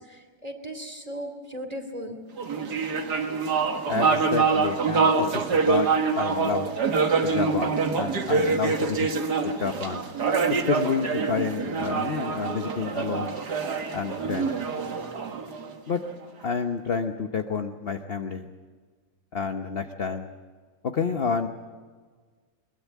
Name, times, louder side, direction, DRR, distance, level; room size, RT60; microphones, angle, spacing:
voice 1, 0.0-2.2, equal, 20° right, 6 dB, 2.6 m, -37 dB
sound 1, 2.4-16.1, right 4 dB, 70° right, 2.2 m, -25 dB
voice 2, 3.9-5.9 6.1-6.7 7.2-9.1 9.4-10.0 10.5-13.4 13.9-14.5 15.9-16.0 16.4-18.5 19.3-20.3 20.8-21.5, left 5 dB, 45° left, 6 dB, 0.9 m, -29 dB
22.0 x 21.0 x 8.2 m, 1.5 s
omnidirectional pair, 1.8 m